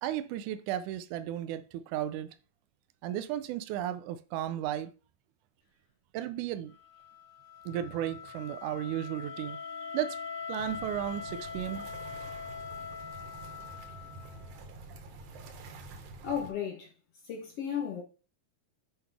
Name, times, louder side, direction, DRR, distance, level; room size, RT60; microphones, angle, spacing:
voice 1, 0.0-2.4 3.0-4.9 6.1-6.7 7.7-11.9, right 11 dB, 85° right, 1.8 m, -34 dB
Wind instrument woodwind instrument, 6.7-14.7, left 6 dB, 40° left, 1.0 m, -42 dB
sound 1, 10.6-16.5, right 3 dB, 65° right, 2.4 m, -48 dB
voice 2, 16.2-16.9 17.2-18.0, left 8 dB, 65° left, 1.5 m, -34 dB
7.7 x 5.6 x 3.4 m
omnidirectional pair, 4.1 m